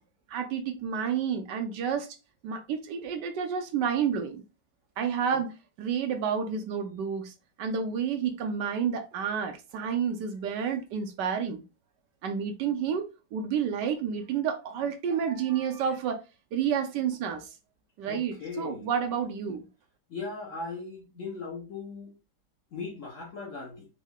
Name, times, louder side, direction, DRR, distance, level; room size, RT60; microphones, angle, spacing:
voice 1, 0.3-2.1 2.4-4.4 5.0-7.3 7.6-11.6 12.2-13.1 13.3-16.2 16.5-17.5 18.0-19.7, right 7 dB, 75° right, 1.2 m, -30 dB
voice 2, 18.0-18.9 20.1-22.1 22.7-23.9, left 4 dB, 55° left, 0.9 m, -38 dB
3.7 x 2.0 x 3.5 m
omnidirectional pair, 2.0 m